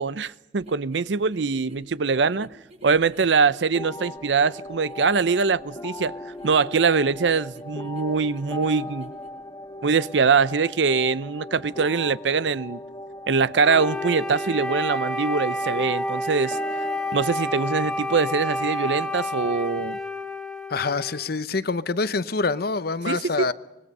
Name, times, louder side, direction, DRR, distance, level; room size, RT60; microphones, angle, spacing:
voice 1, 0.0-2.5 2.8-6.1 6.4-9.1 9.8-12.8 13.3-16.6 17.1-20.0 23.1-23.5, right 5 dB, 85° right, 0.6 m, -23 dB
sound 1, 0.6-9.3, equal, 40° right, 4.7 m, -50 dB
sound 2, 3.7-19.7, left 2 dB, 20° left, 1.8 m, -38 dB
Wind instrument woodwind instrument, 13.6-21.3, left 1 dB, 5° left, 2.5 m, -30 dB
voice 2, 20.7-23.5, left 4 dB, 60° left, 0.8 m, -26 dB
25.5 x 22.0 x 5.5 m
head